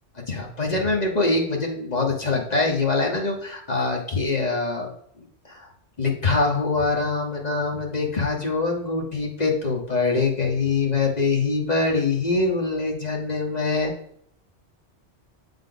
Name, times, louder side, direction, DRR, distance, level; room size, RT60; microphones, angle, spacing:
voice 1, 0.3-4.9 5.5-5.7 6.0-13.9, left 3 dB, 35° left, 1 dB, 1.2 m, -24 dB
8.0 x 3.6 x 3.8 m, 0.68 s
omnidirectional pair, 1.2 m